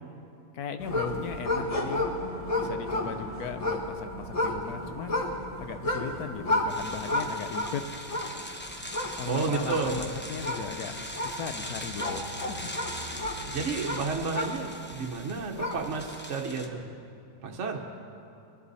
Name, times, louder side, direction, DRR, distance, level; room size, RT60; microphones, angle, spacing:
voice 1, 0.5-2.1 2.5-5.3 5.6-7.9 9.1-12.7 13.1-13.2, left 6 dB, 85° left, 8 dB, 1.3 m, -37 dB
sound 1, 0.8-15.0 15.3-16.0, left 1 dB, 25° left, 1.2 m, -32 dB
sound 2, 6.7-16.7, left 1 dB, 10° left, 0.6 m, -41 dB
voice 2, 9.2-10.0 13.5-16.8 17.4-17.8, right 4 dB, 55° right, 1 dB, 1.2 m, -31 dB
22.5 x 11.0 x 4.1 m, 2.6 s
omnidirectional pair, 1.6 m